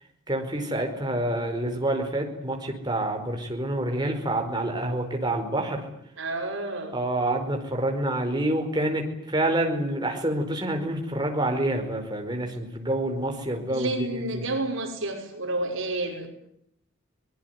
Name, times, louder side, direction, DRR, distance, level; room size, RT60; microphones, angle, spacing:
voice 1, 0.3-5.9 6.9-14.4, right 1 dB, 20° right, 3 dB, 4.8 m, -27 dB
voice 2, 6.2-6.9 13.7-16.3, right 2 dB, 70° right, 3 dB, 5.9 m, -30 dB
24.0 x 20.5 x 9.6 m, 0.73 s
head